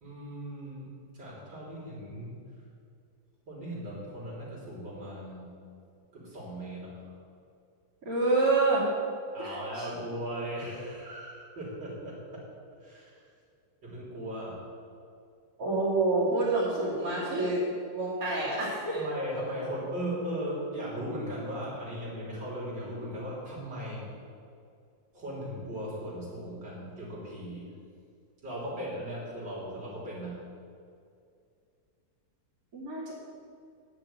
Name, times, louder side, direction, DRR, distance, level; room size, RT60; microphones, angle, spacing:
voice 1, 0.0-0.9 1.1-2.3 3.5-5.4 6.1-7.1 9.3-12.5 12.8-13.2 13.8-14.6 18.9-24.0 25.1-27.7 28.4-30.4, equal, 70° right, -6 dB, 3.7 m, -37 dB
voice 2, 8.0-8.8 9.4-9.9 15.6-17.6 17.9-19.0 32.7-33.1, right 2 dB, 45° right, -8 dB, 3.1 m, -27 dB
8.9 x 6.7 x 8.6 m, 2.4 s
omnidirectional pair, 2.0 m